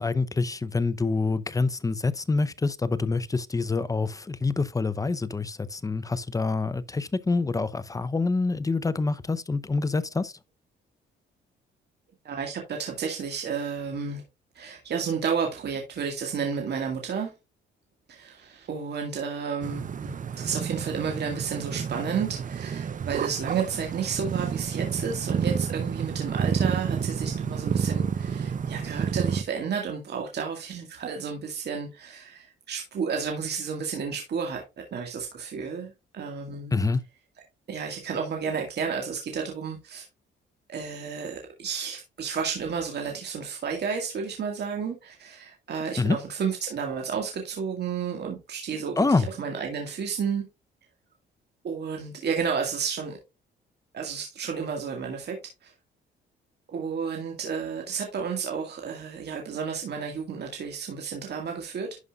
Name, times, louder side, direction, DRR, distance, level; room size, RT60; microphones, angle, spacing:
voice 1, 0.0-10.3 36.7-37.0 46.0-46.2 49.0-49.3, left 3 dB, 15° left, 0.7 m, -26 dB
voice 2, 12.2-14.2 14.5-17.3 18.1-36.8 37.7-40.1 40.7-50.4 51.6-53.2 53.9-55.7 56.7-62.0, right 6 dB, 55° right, 1.9 m, -32 dB
sound 1, 19.6-29.4, right 7 dB, 40° right, 0.7 m, -30 dB
11.0 x 5.4 x 2.4 m
cardioid pair, 90°, 20 cm